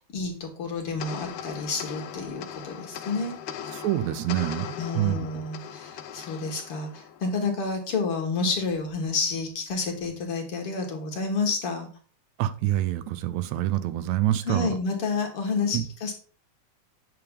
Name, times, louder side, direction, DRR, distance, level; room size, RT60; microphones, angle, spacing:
voice 1, 0.0-3.3 4.8-11.9 14.5-16.1, left 4 dB, 55° left, 3 dB, 2.0 m, -29 dB
sound 1, 1.0-7.6, left 9 dB, 75° left, 1.4 m, -39 dB
voice 2, 3.7-5.3 12.4-14.7 15.7-15.9, right 13 dB, 80° right, 13 dB, 1.8 m, -26 dB
9.2 x 6.9 x 3.6 m, 0.40 s
omnidirectional pair, 3.5 m